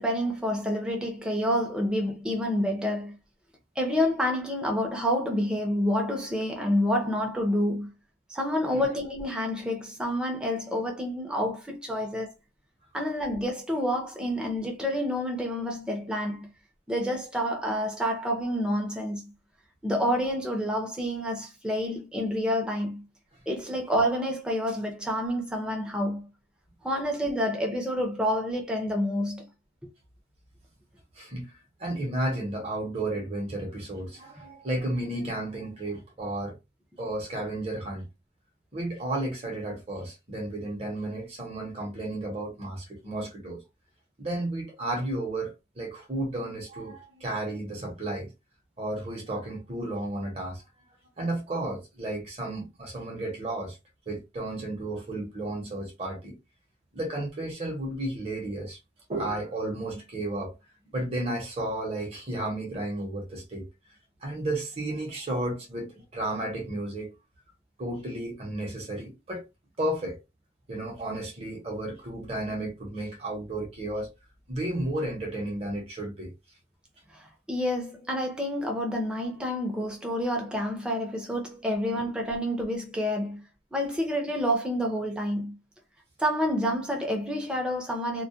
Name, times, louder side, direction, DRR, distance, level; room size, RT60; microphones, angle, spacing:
voice 1, 0.0-3.2 3.8-7.9 8.3-12.3 12.9-16.5 16.9-19.3 19.8-23.0 23.5-26.3 26.8-29.5 77.1-83.4 83.7-85.6 86.2-88.2, equal, 5° right, 0.6 m, -28 dB
voice 2, 31.2-31.5 31.8-36.6 37.0-38.1 38.7-43.6 44.2-48.3 48.8-50.6 51.2-53.8 54.1-56.4 56.9-58.8 59.1-60.6 60.9-63.7 64.2-67.1 67.8-69.5 69.8-70.2 70.7-74.1 74.5-76.3 81.9-82.0, right 1 dB, 35° right, 0.8 m, -33 dB
2.2 x 2.1 x 2.7 m
head